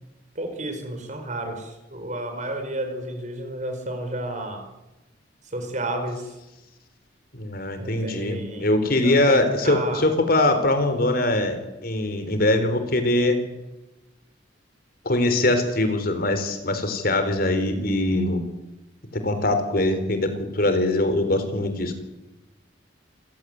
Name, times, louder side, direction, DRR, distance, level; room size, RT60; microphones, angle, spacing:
voice 1, 0.3-4.6 5.5-6.2 7.8-8.7 9.0-10.0, right 1 dB, 40° right, 6 dB, 5.2 m, -31 dB
voice 2, 7.3-13.4 15.0-18.4 19.1-22.0, left 1 dB, 50° left, 8 dB, 4.1 m, -22 dB
28.5 x 17.0 x 9.5 m, 1.0 s
head